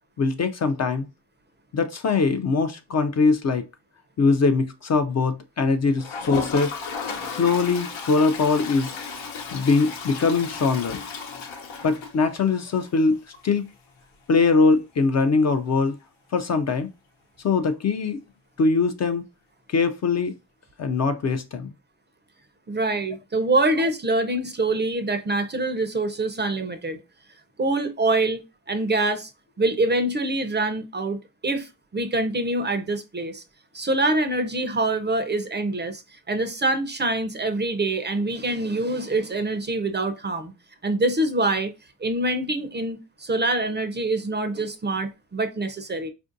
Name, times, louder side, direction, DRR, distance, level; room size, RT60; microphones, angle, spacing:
voice 1, 0.2-1.1 1.7-3.7 4.2-6.7 7.3-8.9 9.5-11.0 11.8-13.7 14.3-16.0 16.3-16.9 17.4-18.2 18.6-19.2 19.7-20.3 20.8-21.7, left 4 dB, 40° left, 0.4 m, -22 dB
Toilet flush, 6.0-12.7 13.0-13.1 13.3-13.4 13.7-13.8 16.3-16.4 17.7-17.8, left 5 dB, 85° left, 0.9 m, -34 dB
voice 2, 22.7-27.0 27.6-29.3 29.6-33.4 33.7-40.5 40.8-41.7 42.0-46.1, right 2 dB, 25° right, 0.5 m, -25 dB
4.3 x 2.6 x 2.5 m
cardioid pair, 70°, 44 cm